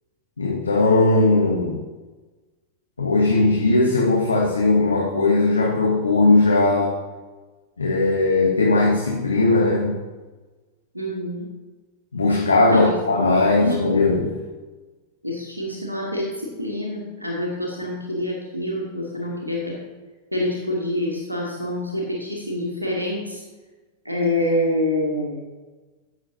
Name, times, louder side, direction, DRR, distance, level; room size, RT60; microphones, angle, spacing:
voice 1, 0.4-1.8 3.0-7.0 7.8-10.0 12.1-14.4, left 2 dB, 75° left, -1 dB, 1.0 m, -18 dB
voice 2, 10.9-11.4 12.7-12.9 13.6-14.0 15.2-19.8 20.3-23.4 24.0-25.5, left 1 dB, 85° right, -2 dB, 1.4 m, -26 dB
14.0 x 6.2 x 2.7 m, 1.3 s
figure-of-eight pair, 90°, 0 cm